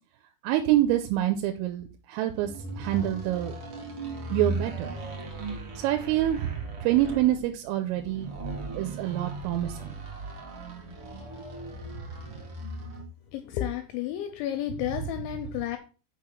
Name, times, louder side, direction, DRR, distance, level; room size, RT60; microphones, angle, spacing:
voice 1, 0.4-2.5 2.8-3.5 4.3-4.9 5.8-8.3 8.7-9.9, right 13 dB, 90° right, 6 dB, 3.4 m, -26 dB
sound 1, 2.3-13.1, right 2 dB, 55° right, 1.6 m, -37 dB
voice 2, 13.3-15.8, left 12 dB, 80° left, 6 dB, 2.9 m, -32 dB
6.7 x 5.6 x 6.1 m, 0.35 s
omnidirectional pair, 5.8 m